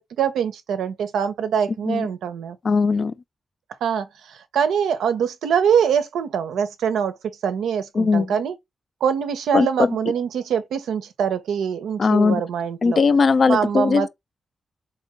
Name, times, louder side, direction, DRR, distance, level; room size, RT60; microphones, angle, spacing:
voice 1, 0.2-2.6 3.8-7.2 7.4-8.6 9.0-13.0 13.5-14.1, right 7 dB, 80° right, 0.5 m, -23 dB
voice 2, 2.6-3.1 8.0-8.3 9.5-10.0 12.0-12.4 12.8-14.1, left 4 dB, 55° left, 0.3 m, -19 dB
3.6 x 2.8 x 2.9 m
supercardioid pair, 45°, 0 cm